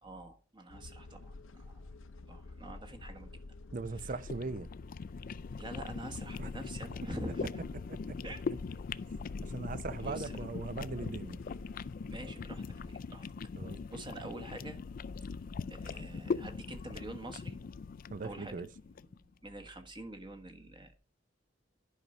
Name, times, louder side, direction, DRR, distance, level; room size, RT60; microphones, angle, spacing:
voice 1, 0.0-1.8 2.2-3.3 4.0-4.1 5.6-7.6 8.2-8.4 10.0-10.4 12.1-13.3 13.9-14.8 15.7-17.5 18.2-18.5 19.2-20.9, right 2 dB, 25° right, 1.3 m, -46 dB
sound 1, 0.7-13.0, left 2 dB, 90° left, 0.7 m, -48 dB
voice 2, 3.7-4.7 6.4-6.5 8.1-8.2 9.4-11.4 13.6-13.8 18.1-18.7, right 3 dB, 45° right, 0.6 m, -39 dB
sound 2, 3.9-19.2, left 5 dB, 45° left, 0.3 m, -41 dB
11.0 x 5.5 x 5.0 m
head